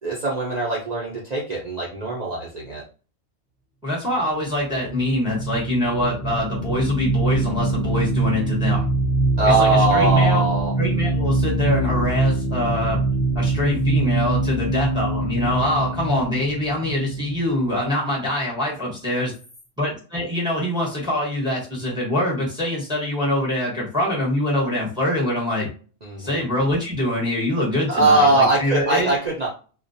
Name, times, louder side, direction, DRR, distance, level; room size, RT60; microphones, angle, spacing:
voice 1, 0.0-2.8 9.4-10.7 14.7-14.8 26.0-26.4 27.9-29.5, right 2 dB, 60° right, -4 dB, 0.4 m, -21 dB
voice 2, 3.8-8.9 9.4-10.4 10.8-13.0 13.3-19.3 19.8-25.7 26.2-29.1, left 1 dB, 5° right, -3 dB, 0.7 m, -24 dB
sound 1, 4.7-17.9, right 3 dB, 45° left, 0.6 m, -23 dB
2.3 x 2.1 x 2.6 m, 0.37 s
omnidirectional pair, 1.5 m